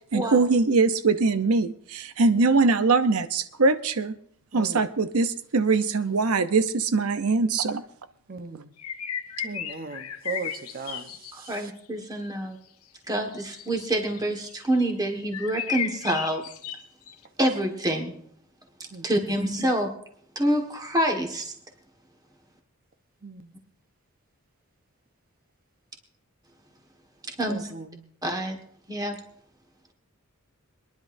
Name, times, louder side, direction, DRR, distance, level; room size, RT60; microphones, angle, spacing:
voice 1, 0.1-4.1 4.5-7.8, right 3 dB, 80° right, 11 dB, 0.7 m, -22 dB
voice 2, 4.5-4.9 8.3-8.7 9.4-11.7 18.9-19.3 23.2-23.6 27.4-28.0, right 4 dB, 45° right, 8 dB, 1.0 m, -38 dB
sound 1, 8.8-11.6 13.2-14.9 15.2-17.1, left 8 dB, 90° left, 0.8 m, -34 dB
voice 3, 11.5-12.6 13.1-16.5 17.4-18.2 19.0-19.9 20.3-21.5 27.3-27.7 28.2-28.6 28.9-29.2, right 1 dB, 20° right, 3 dB, 1.6 m, -27 dB
25.5 x 10.5 x 2.7 m, 0.66 s
head